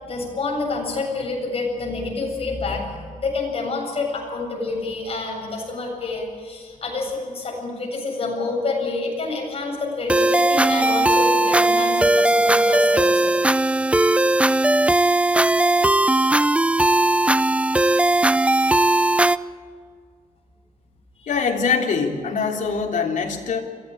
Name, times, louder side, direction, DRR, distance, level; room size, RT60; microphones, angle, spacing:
voice 1, 0.0-13.3 21.2-21.3, left 3 dB, 45° left, 0 dB, 7.7 m, -28 dB
sound 1, 10.1-19.4, right 2 dB, 10° right, 0.5 m, -18 dB
voice 2, 21.3-23.6, left 5 dB, 65° left, 2 dB, 3.1 m, -23 dB
23.0 x 15.5 x 8.7 m, 2.1 s
cardioid pair, 105°, 14 cm